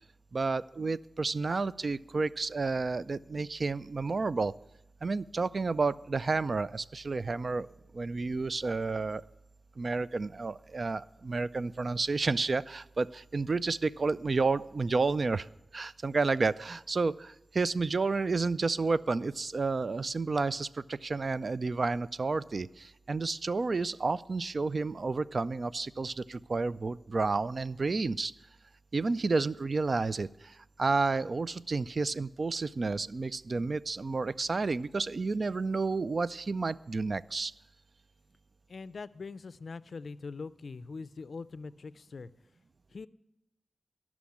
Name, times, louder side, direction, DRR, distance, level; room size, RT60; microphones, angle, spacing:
voice 1, 0.3-4.5 5.0-7.7 7.9-9.3 9.8-15.5 15.7-28.3 28.9-37.5, right 3 dB, 55° right, 17 dB, 0.3 m, -31 dB
voice 2, 38.7-42.3 42.9-43.1, left 4 dB, 70° left, 17 dB, 0.4 m, -42 dB
13.0 x 6.1 x 8.5 m, 0.86 s
cardioid pair, 55°, 0 cm